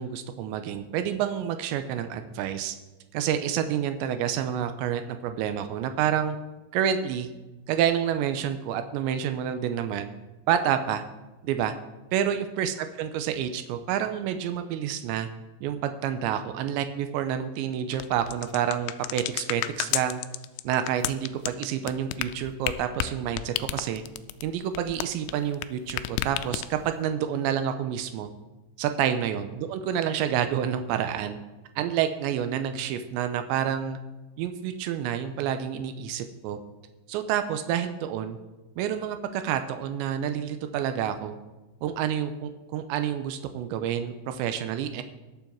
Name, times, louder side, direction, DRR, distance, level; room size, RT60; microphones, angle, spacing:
voice 1, 0.0-2.8 3.1-6.4 6.7-7.3 7.7-10.1 10.5-11.0 11.4-11.7 12.1-15.3 15.6-20.2 20.6-24.0 24.4-28.3 28.8-31.4 31.8-34.0 34.4-36.6 37.1-38.4 38.8-41.4 41.8-45.0, right 9 dB, 85° right, 9 dB, 2.8 m, -28 dB
sound 1, 17.9-25.6 25.9-26.9, left 14 dB, 85° left, 2.8 m, -32 dB
21.0 x 7.1 x 4.5 m, 1.1 s
omnidirectional pair, 5.6 m